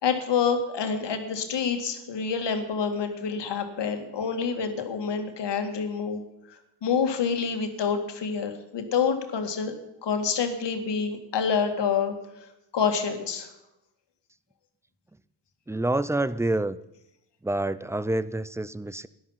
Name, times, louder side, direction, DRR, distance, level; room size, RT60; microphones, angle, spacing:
voice 1, 0.0-6.2 6.5-9.8 10.0-12.1 12.7-13.5, left 6 dB, 85° left, 6 dB, 2.1 m, -27 dB
voice 2, 15.7-16.8 17.4-19.1, right 2 dB, 5° right, 17 dB, 0.6 m, -27 dB
13.0 x 11.0 x 5.7 m, 0.87 s
cardioid pair, 90°, 41 cm